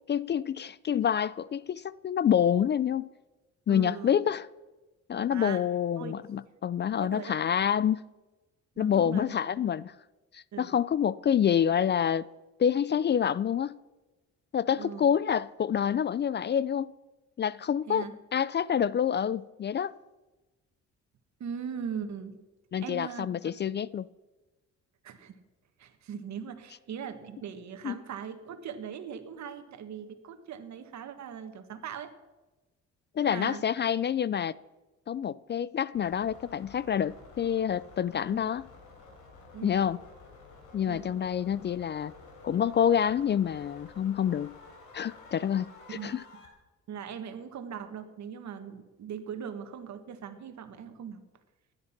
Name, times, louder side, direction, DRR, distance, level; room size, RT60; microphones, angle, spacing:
voice 1, 0.1-3.1 3.7-4.5 5.1-8.0 8.8-9.9 10.3-12.3 12.6-13.8 14.5-16.9 17.4-18.0 18.3-19.9 22.7-24.1 27.8-28.0 33.2-34.5 35.1-38.7 39.6-40.0 40.7-42.1 42.4-44.5 44.9-46.2, left 8 dB, 35° left, 0.4 m, -27 dB
voice 2, 3.7-4.2 5.3-5.6 6.0-6.2 7.0-7.4 8.8-9.4 10.5-10.7 14.8-15.1 17.9-18.1 21.4-22.4 22.8-23.5 25.0-25.4 25.8-32.1 33.2-33.7 38.4-38.5 39.5-39.8 40.9-41.1 45.9-46.1 46.9-51.2, right 7 dB, 65° right, 1.6 m, -40 dB
sound 1, 35.9-46.5, left 3 dB, 90° left, 3.6 m, -52 dB
16.0 x 11.0 x 5.9 m
cardioid pair, 90°, 30 cm